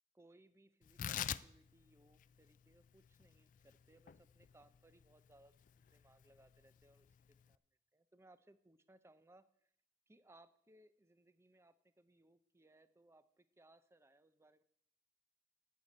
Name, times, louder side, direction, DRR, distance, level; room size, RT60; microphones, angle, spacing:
voice 1, 0.1-7.6 7.9-9.7 10.1-14.6, right 1 dB, 15° right, 13 dB, 0.5 m, -67 dB
Tearing, 0.8-7.5, left 9 dB, 45° left, 0.3 m, -47 dB
9.2 x 6.7 x 8.4 m, 0.72 s
head